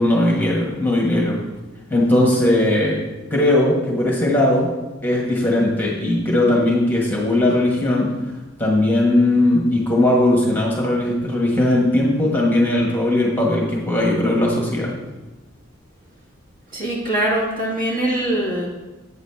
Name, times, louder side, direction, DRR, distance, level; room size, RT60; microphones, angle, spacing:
voice 1, 0.0-1.3 1.9-3.0 3.3-4.7 5.0-8.1 8.6-14.9, left 1 dB, 10° left, -3 dB, 1.3 m, -18 dB
voice 2, 16.7-18.7, right 1 dB, 45° right, -3 dB, 2.1 m, -22 dB
8.5 x 4.1 x 6.8 m, 1.1 s
head